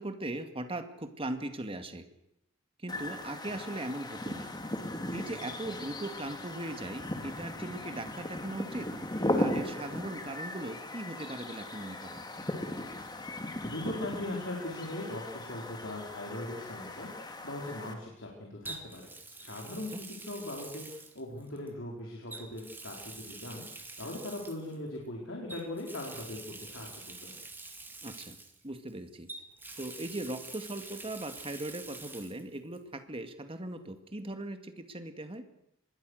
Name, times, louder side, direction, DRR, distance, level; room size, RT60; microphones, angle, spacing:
voice 1, 0.0-2.1 2.8-4.5 5.1-8.9 9.4-12.2 19.9-20.0 28.0-28.4 28.6-29.3 29.8-35.4, right 1 dB, 30° right, 8 dB, 2.2 m, -39 dB
sound 1, 2.9-17.9, left 1 dB, 20° left, 2.4 m, -37 dB
voice 2, 13.6-19.1 19.4-27.3, left 1 dB, 70° left, -1 dB, 4.8 m, -40 dB
Water tap faucet, 15.7-15.9 18.7-21.7 22.3-24.8 25.5-28.9 29.3-32.4 32.7-32.8 34.4-34.5, right 3 dB, 10° right, 2.4 m, -46 dB
25.0 x 21.5 x 6.6 m, 0.82 s
head